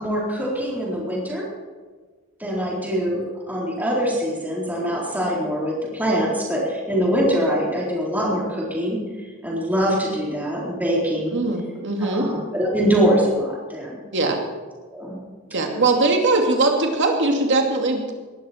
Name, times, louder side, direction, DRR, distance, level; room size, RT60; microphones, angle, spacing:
voice 1, 0.0-1.4 2.4-3.2 3.5-11.4 12.0-14.0 14.9-15.2 15.6-15.8, equal, 10° right, -5 dB, 4.1 m, -23 dB
voice 2, 11.3-12.3 14.1-14.4 15.5-18.1, right 2 dB, 55° right, 2 dB, 2.4 m, -20 dB
20.0 x 12.0 x 4.4 m, 1.4 s
head